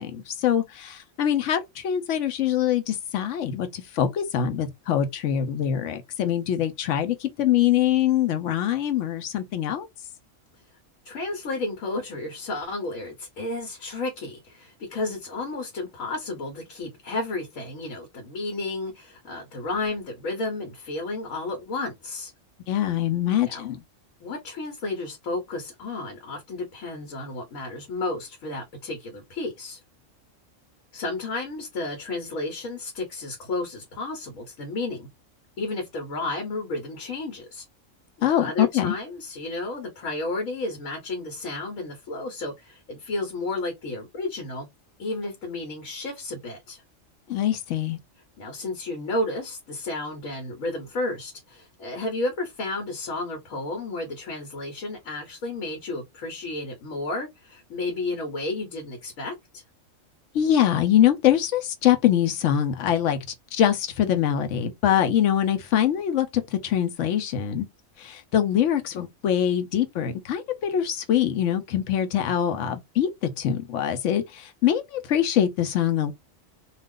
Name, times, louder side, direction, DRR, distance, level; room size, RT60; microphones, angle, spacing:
voice 1, 0.0-9.9 22.7-23.8 38.2-38.9 47.3-48.0 60.3-63.2 63.5-67.6 68.0-76.1, left 10 dB, 70° left, 0.9 m, -24 dB
voice 2, 11.0-22.3 23.5-23.6 24.2-29.8 30.9-35.1 35.6-37.6 38.3-44.7 45.0-46.8 48.4-59.6, left 2 dB, 85° left, 1.3 m, -32 dB
2.4 x 2.4 x 3.5 m
omnidirectional pair, 1.3 m